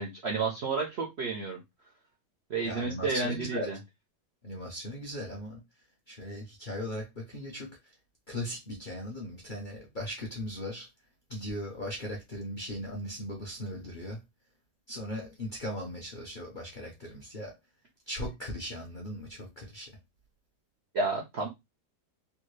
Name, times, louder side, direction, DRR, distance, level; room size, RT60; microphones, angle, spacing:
voice 1, 0.0-1.6 2.5-3.8 20.9-21.5, right 4 dB, 65° right, 0.6 m, -31 dB
voice 2, 2.6-3.8 4.4-5.6 6.1-8.0 8.3-10.9 11.3-14.2 14.9-17.5 18.1-20.0, left 1 dB, 45° left, 0.6 m, -38 dB
3.4 x 2.3 x 3.1 m
omnidirectional pair, 1.8 m